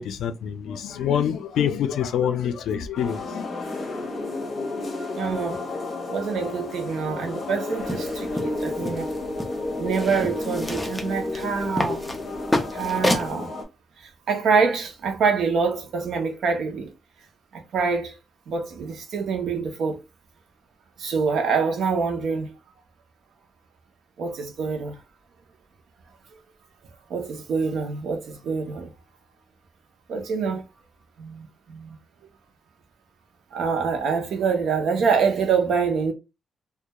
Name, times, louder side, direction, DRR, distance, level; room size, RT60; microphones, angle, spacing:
voice 1, 0.0-4.1, left 8 dB, 85° left, 0.3 m, -27 dB
sound 1, 3.0-13.6, left 2 dB, 35° left, 0.8 m, -31 dB
voice 2, 5.1-5.6 6.1-9.1 9.8-12.0 12.7-13.5 14.0-16.9 17.5-18.1 18.5-20.0 21.0-22.5 24.2-25.0 27.1-28.9 30.1-30.6 31.2-32.0 33.5-36.1, right 5 dB, 65° right, 0.6 m, -25 dB
sound 2, 7.8-13.3, left 1 dB, 5° left, 0.4 m, -30 dB
2.2 x 2.2 x 2.9 m
wide cardioid pair, 155°, 0 cm